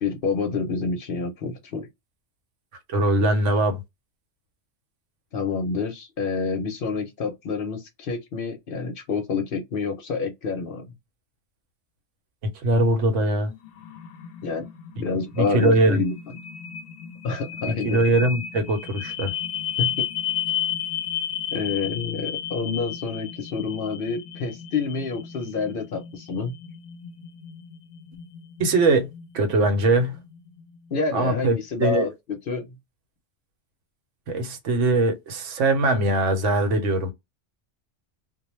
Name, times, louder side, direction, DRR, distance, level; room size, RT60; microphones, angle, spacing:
voice 1, 0.0-1.9 5.3-10.8 14.4-14.6 15.0-16.1 17.2-18.0 19.8-20.0 21.5-26.6 30.9-32.1 32.5-32.8, left 4 dB, 55° left, 0.7 m, -28 dB
voice 2, 2.9-3.8 12.6-13.5 15.4-16.0 17.8-19.3 28.6-29.1 29.3-30.2 31.1-32.1 34.3-37.1, right 2 dB, 85° right, 1.1 m, -21 dB
sound 1, 13.0-31.0, left 10 dB, 85° left, 0.9 m, -34 dB
2.3 x 2.1 x 3.0 m
omnidirectional pair, 1.2 m